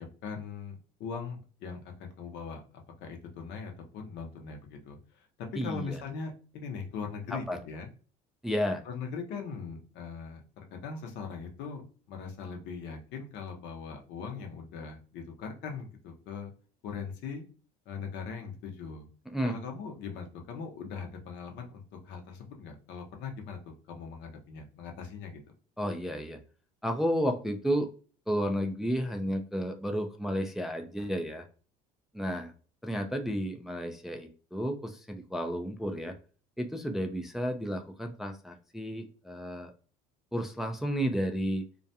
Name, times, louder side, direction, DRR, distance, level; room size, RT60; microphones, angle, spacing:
voice 1, 0.2-2.6 3.0-7.9 8.8-10.4 10.7-16.5 16.8-17.4 17.9-19.1 19.4-25.4, left 5 dB, 65° left, 3 dB, 0.7 m, -40 dB
voice 2, 5.6-6.0 7.5-7.6 8.4-8.8 19.3-19.6 25.8-26.4 26.8-27.9 28.3-31.4 32.1-32.5 32.8-36.1 36.6-39.7 40.3-41.7, equal, ahead, 4 dB, 0.3 m, -32 dB
2.4 x 2.2 x 2.6 m, 0.38 s
supercardioid pair, 80°, 19 cm